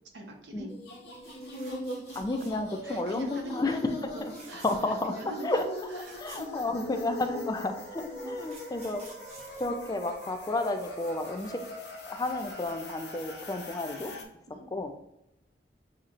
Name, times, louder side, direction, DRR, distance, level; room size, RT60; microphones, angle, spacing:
voice 1, 0.1-0.7 2.8-3.8 4.5-4.6 5.1-5.6 6.0-6.7 6.9-7.5 8.1-8.4 14.0-14.7, right 2 dB, 75° right, 2 dB, 0.9 m, -43 dB
sound 1, 0.7-14.2, left 1 dB, 65° left, 0.8 m, -41 dB
sound 2, 1.2-2.8 3.2-3.5 4.2-5.0 5.4-5.5 5.7-7.2 8.0-10.5 12.4-12.6 12.9-13.0, right 3 dB, 40° right, 1.3 m, -52 dB
voice 2, 2.2-4.3 4.6-5.1 5.4-5.7 5.9-9.1 9.6-11.6 12.1-14.1 14.7-14.9, left 2 dB, 20° left, 7 dB, 0.4 m, -32 dB
7.0 x 2.9 x 2.5 m, 0.84 s
head